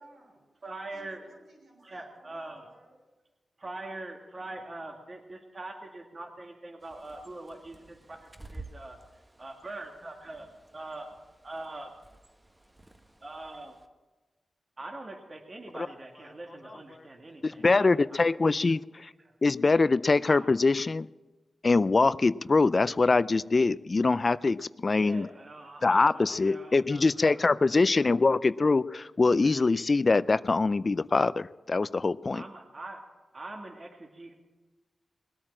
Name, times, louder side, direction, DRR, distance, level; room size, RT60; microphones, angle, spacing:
voice 1, 0.0-0.5 0.9-3.0, right 2 dB, 85° right, -3 dB, 6.5 m, -57 dB
voice 2, 0.6-1.2 1.8-2.7 3.6-9.0 9.4-10.5 10.7-11.1 11.4-11.9 13.2-13.7 14.8-18.3 19.2-19.3 20.3-20.6 25.0-25.8 26.1-27.8 32.3-33.0 33.3-34.3, right 2 dB, 45° right, 1 dB, 2.2 m, -43 dB
Bird, 6.8-13.9, right 2 dB, 20° right, 1.2 m, -52 dB
voice 3, 17.4-19.1 19.4-21.1 21.6-25.3 25.8-32.4, left 3 dB, 45° left, 17 dB, 0.4 m, -24 dB
20.5 x 8.9 x 7.4 m, 1.2 s
cardioid pair, 50°, 0 cm